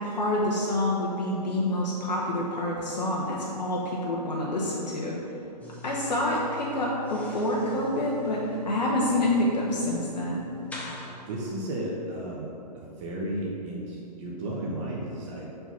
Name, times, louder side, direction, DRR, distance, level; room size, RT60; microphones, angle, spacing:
voice 1, 0.0-5.1 5.8-10.4, left 1 dB, 80° left, -4 dB, 1.0 m, -27 dB
sound 1, 5.6-11.1, left 3 dB, 5° left, 0.7 m, -43 dB
voice 2, 11.3-15.5, right 1 dB, 45° right, -3 dB, 1.0 m, -34 dB
4.7 x 3.9 x 5.6 m, 2.9 s
hypercardioid pair, 125°, 21 cm